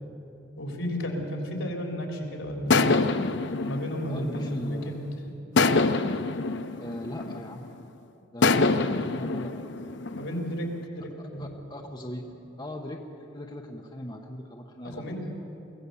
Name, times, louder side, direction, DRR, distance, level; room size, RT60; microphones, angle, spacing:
voice 1, 0.6-2.9 3.6-5.0 10.1-10.7 11.0-11.6 14.8-15.2, equal, 80° left, 1 dB, 3.6 m, -33 dB
sound 1, 2.7-5.0 5.6-7.7 8.4-10.7, left 3 dB, 55° left, 0.6 m, -25 dB
voice 2, 4.1-4.9 6.8-7.7 8.3-9.7 11.2-12.2 12.6-15.4, left 1 dB, 20° left, 2 dB, 1.0 m, -39 dB
23.5 x 17.0 x 7.0 m, 3.0 s
head